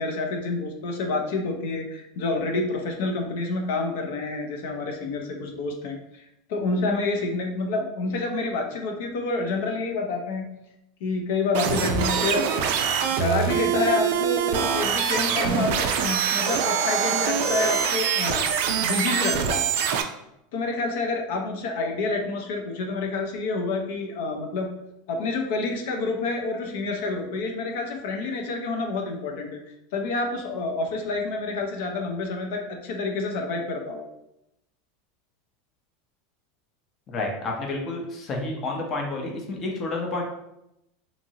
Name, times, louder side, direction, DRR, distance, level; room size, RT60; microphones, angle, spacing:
voice 1, 0.0-10.5 11.0-12.4 12.8-18.5 18.8-19.7 20.5-24.7 25.1-29.5 29.9-34.0, left 3 dB, 70° left, 3 dB, 0.5 m, -28 dB
sound 1, 11.5-20.0, right 7 dB, 65° right, 0.3 m, -24 dB
voice 2, 37.1-40.2, left 2 dB, 30° left, 1 dB, 0.6 m, -30 dB
2.9 x 2.6 x 2.7 m, 0.85 s
supercardioid pair, 150°, 0 cm